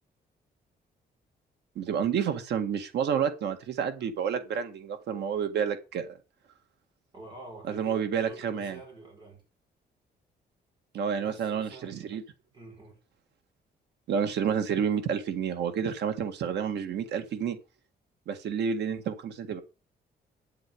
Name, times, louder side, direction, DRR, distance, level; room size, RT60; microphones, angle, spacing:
voice 1, 1.8-6.1 7.7-8.8 10.9-12.2 14.1-17.6 18.3-19.6, right 7 dB, 85° right, 1.9 m, -29 dB
voice 2, 7.1-9.4 11.1-12.2 12.5-13.0, right 2 dB, 30° right, 5.2 m, -48 dB
10.0 x 7.8 x 5.3 m
cardioid pair, 175°, 17 cm